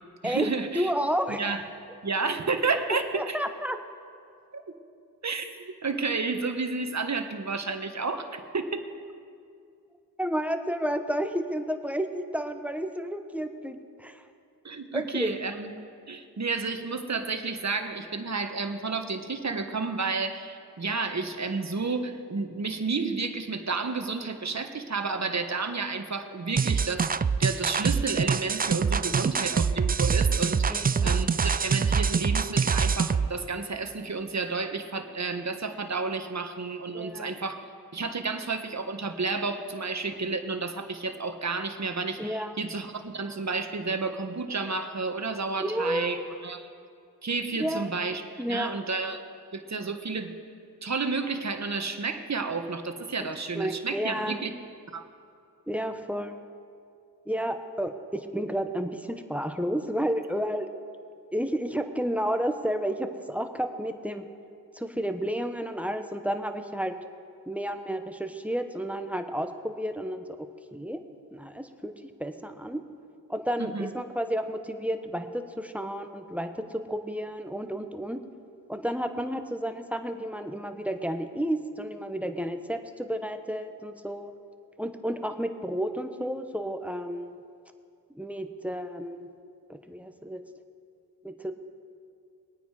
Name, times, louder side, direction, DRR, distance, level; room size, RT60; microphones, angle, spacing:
voice 1, 0.2-0.9 1.4-1.6 2.0-3.4 4.5-4.7 5.2-8.8 14.6-15.7 16.1-37.7 37.9-46.7 47.2-48.2 48.5-49.2 49.5-50.3 50.8-54.5 54.9-55.0 73.6-73.9, right 4 dB, 45° right, 7 dB, 1.4 m, -31 dB
voice 2, 0.7-1.4 3.1-3.8 10.2-14.2 14.9-15.3 30.7-31.2 36.9-37.4 42.2-42.6 45.6-46.1 47.6-47.9 48.4-48.8 53.5-54.4 55.7-56.3 57.3-60.7 61.3-64.2 64.7-66.9 67.5-70.3 70.7-71.0 71.3-72.8 73.3-78.2 78.7-84.3 84.8-87.4 88.1-89.3 89.7-90.4 91.2-91.5, equal, 5° right, 7 dB, 1.2 m, -31 dB
sound 1, 26.6-33.3, right 5 dB, 25° right, 0.4 m, -25 dB
22.5 x 9.2 x 4.9 m, 2.3 s
cardioid pair, 45°, 39 cm